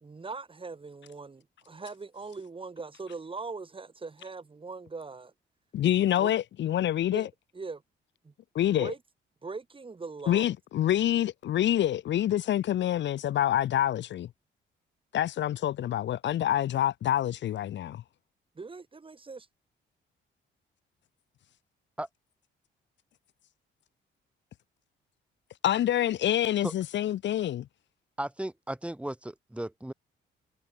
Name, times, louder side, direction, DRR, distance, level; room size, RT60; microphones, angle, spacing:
voice 1, 0.0-5.3 6.2-6.3 7.1-7.3 7.5-7.8 8.2-8.3 8.7-9.0 9.4-10.5 18.6-19.5, right 4 dB, 25° right, 2.7 m, -41 dB
voice 2, 5.7-7.3 8.5-8.9 10.3-14.3 15.1-18.0 25.6-27.7, left 12 dB, 65° left, 1.0 m, -27 dB
voice 3, 28.2-29.9, right 1 dB, 5° right, 2.4 m, -35 dB
cardioid pair, 90°, 20 cm